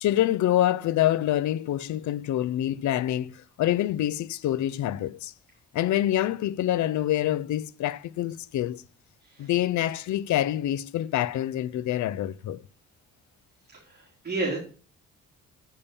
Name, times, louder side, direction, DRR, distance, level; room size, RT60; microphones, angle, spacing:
voice 1, 0.0-5.3 5.7-8.8 9.4-12.6, left 13 dB, 70° left, 0.7 m, -26 dB
voice 2, 13.7-14.6, right 2 dB, 30° right, 3.7 m, -32 dB
8.7 x 6.9 x 7.0 m
cardioid pair, 90°, 30 cm